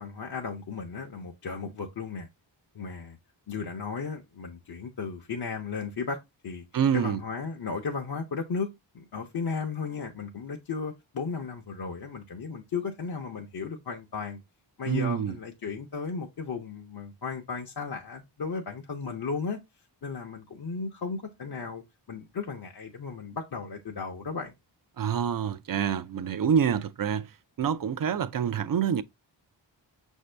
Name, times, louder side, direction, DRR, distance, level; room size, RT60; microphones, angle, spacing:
voice 1, 0.0-2.3 2.7-3.2 3.5-6.2 6.4-6.6 6.9-8.7 8.9-14.4 14.8-19.6 20.0-24.5, left 5 dB, 55° left, 0.7 m, -35 dB
voice 2, 6.7-7.2 14.8-15.4 25.0-27.3 27.6-29.0, right 8 dB, 50° right, 0.4 m, -26 dB
5.8 x 2.7 x 3.2 m
cardioid pair, 55°, 46 cm